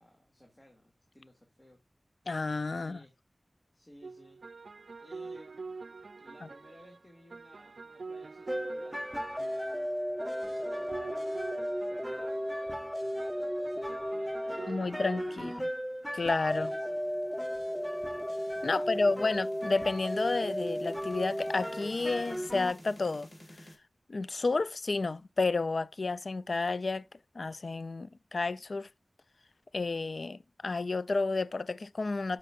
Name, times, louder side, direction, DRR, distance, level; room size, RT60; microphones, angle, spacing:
voice 1, 0.0-1.8 2.8-3.2 3.7-4.4 5.0-5.7 6.2-9.2 10.4-12.6 13.0-15.6 16.4-17.0 18.7-19.3 24.4-24.6, equal, 30° left, 2.0 m, -57 dB
voice 2, 2.3-3.0 14.7-15.7 16.1-16.7 18.6-23.3 24.1-27.1 27.4-28.9 29.7-32.4, left 3 dB, 75° left, 0.3 m, -31 dB
sound 1, 4.0-15.4, right 4 dB, 90° right, 0.3 m, -45 dB
sound 2, 8.5-22.7, equal, ahead, 0.6 m, -35 dB
sound 3, 15.7-23.8, equal, 50° left, 2.1 m, -54 dB
12.0 x 5.1 x 2.4 m
wide cardioid pair, 45°, 0 cm